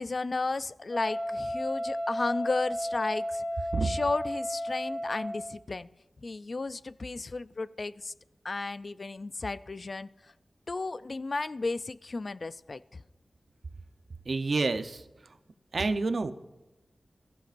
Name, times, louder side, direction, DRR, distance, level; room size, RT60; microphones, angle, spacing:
voice 1, 0.0-3.4 3.8-5.9 6.2-8.1 8.4-10.1 10.7-12.8, left 3 dB, 55° left, 0.4 m, -33 dB
Wind instrument woodwind instrument, 0.9-5.6, equal, 25° left, 2.5 m, -33 dB
voice 2, 14.3-15.0 15.7-16.3, right 3 dB, 70° right, 0.8 m, -28 dB
22.5 x 14.5 x 2.6 m
wide cardioid pair, 65°, 0 cm